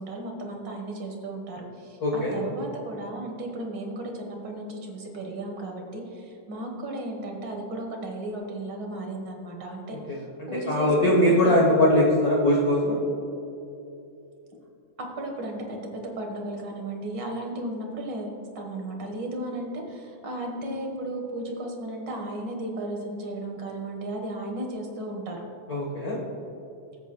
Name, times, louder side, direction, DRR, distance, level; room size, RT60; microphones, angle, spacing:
voice 1, 0.0-10.0 10.5-11.6 15.0-25.4, right 1 dB, 50° right, 1 dB, 1.5 m, -35 dB
voice 2, 2.0-2.4 10.1-13.0 25.7-26.2, left 1 dB, 50° left, -3 dB, 1.2 m, -21 dB
20.0 x 8.0 x 2.3 m, 2.8 s
omnidirectional pair, 3.4 m